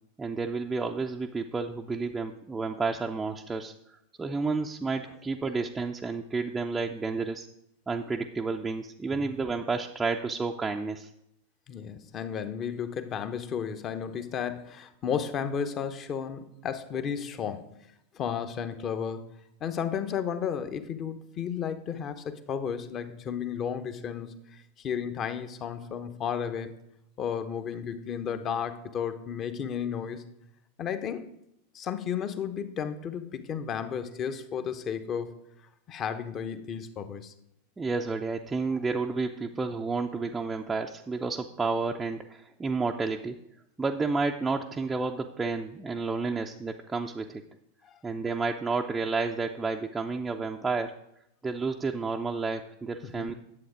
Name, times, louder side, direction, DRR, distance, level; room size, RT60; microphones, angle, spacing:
voice 1, 0.2-3.7 4.2-7.5 7.9-11.1 37.8-43.4 43.8-47.4 48.0-50.9 51.4-53.3, right 4 dB, 10° right, 1 dB, 0.5 m, -31 dB
voice 2, 11.7-17.7 18.1-19.3 19.6-24.3 24.8-26.7 27.2-30.2 30.8-31.3 31.7-35.3 35.9-37.3 47.8-48.0 53.1-53.3, left 7 dB, 30° left, 10 dB, 0.9 m, -33 dB
11.0 x 7.8 x 5.0 m, 0.80 s
figure-of-eight pair, 90°, 0 cm